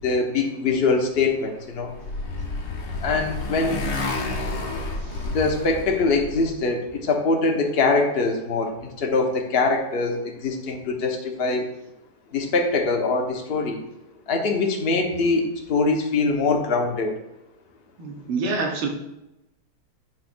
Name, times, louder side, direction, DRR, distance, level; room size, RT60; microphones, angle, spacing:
voice 1, 0.0-1.9 3.0-3.8 5.3-11.7 12.3-13.8 14.3-17.1, left 3 dB, 40° left, 2 dB, 0.9 m, -23 dB
Motorcycle, 1.5-6.5, left 2 dB, 60° left, 1.6 m, -30 dB
voice 2, 18.0-18.9, right 3 dB, 75° right, 2 dB, 2.0 m, -27 dB
8.9 x 3.1 x 6.1 m, 0.93 s
omnidirectional pair, 2.4 m